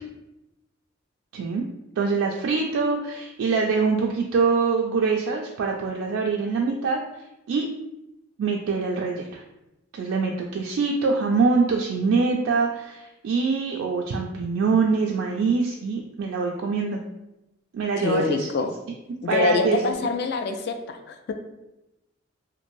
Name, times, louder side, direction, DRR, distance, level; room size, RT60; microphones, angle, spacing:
voice 1, 1.3-1.6 2.0-7.7 8.4-9.4 9.9-17.0 17.7-18.5 19.3-20.1, right 4 dB, 80° right, 0 dB, 0.3 m, -24 dB
voice 2, 18.0-18.7 19.2-21.3, left 3 dB, 55° left, 6 dB, 0.3 m, -25 dB
3.0 x 2.5 x 2.6 m, 0.94 s
head